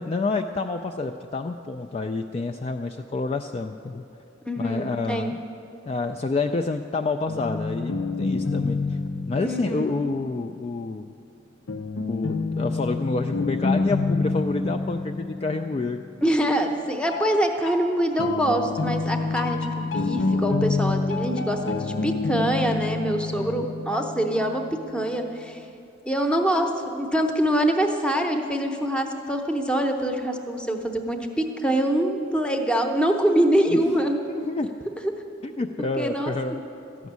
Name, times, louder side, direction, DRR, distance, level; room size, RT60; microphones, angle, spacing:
voice 1, 0.0-4.0 4.6-5.4 5.9-9.0 9.3-11.1 12.1-16.0 23.4-23.5 33.7-34.8 35.4-36.6, left 3 dB, 30° left, 5 dB, 0.3 m, -28 dB
voice 2, 4.5-5.3 9.4-10.0 16.2-25.7 26.1-34.2 35.0-35.1 36.0-36.6, right 1 dB, 5° left, 4 dB, 0.8 m, -24 dB
sound 1, 7.3-10.4 11.7-16.3 17.1-24.8, left 3 dB, 85° left, 0.7 m, -28 dB
13.0 x 6.2 x 9.4 m, 2.7 s
head